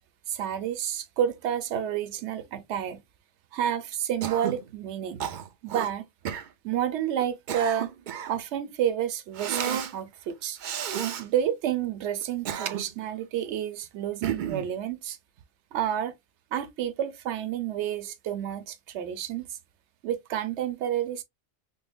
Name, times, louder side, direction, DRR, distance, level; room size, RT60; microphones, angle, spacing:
voice 1, 0.3-3.0 3.5-5.3 5.6-6.1 6.6-7.9 8.3-10.6 11.2-15.2 15.7-16.1 16.5-19.5 20.0-21.2, right 10 dB, 85° right, 0.9 m, -30 dB
Cough, 4.2-4.6 5.2-5.9 6.2-6.5 7.2-8.4 9.4-9.9 10.6-11.2 12.2-13.0 14.2-14.7, right 8 dB, 60° right, 0.5 m, -32 dB
5.4 x 2.0 x 2.2 m
omnidirectional pair, 1.1 m